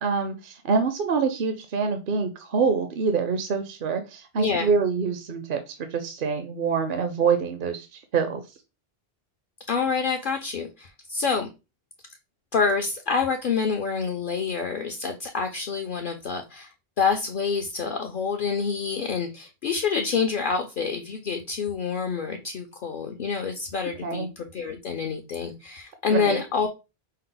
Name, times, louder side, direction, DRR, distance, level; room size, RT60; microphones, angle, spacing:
voice 1, 0.0-8.4 24.0-24.3 26.1-26.4, right 5 dB, 60° right, 7 dB, 0.7 m, -26 dB
voice 2, 4.4-4.7 9.7-11.5 12.5-16.7 17.0-26.7, left 5 dB, 60° left, 3 dB, 0.7 m, -27 dB
5.4 x 2.0 x 3.8 m, 0.27 s
omnidirectional pair, 1.1 m